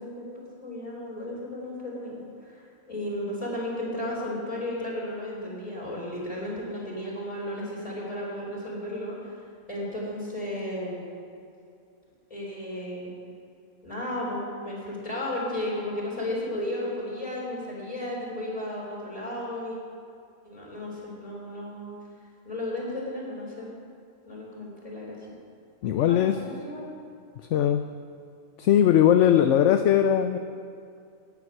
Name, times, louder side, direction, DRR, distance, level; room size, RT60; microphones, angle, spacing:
voice 1, 0.0-11.0 12.3-13.1 13.8-19.8 20.4-21.9 22.4-23.7 24.3-25.3 25.9-26.9, left 1 dB, 25° left, -4 dB, 4.0 m, -34 dB
voice 2, 25.8-26.4 27.5-27.8 28.6-30.4, left 10 dB, 65° left, 9 dB, 0.8 m, -20 dB
10.5 x 9.5 x 9.4 m, 2.4 s
omnidirectional pair, 1.5 m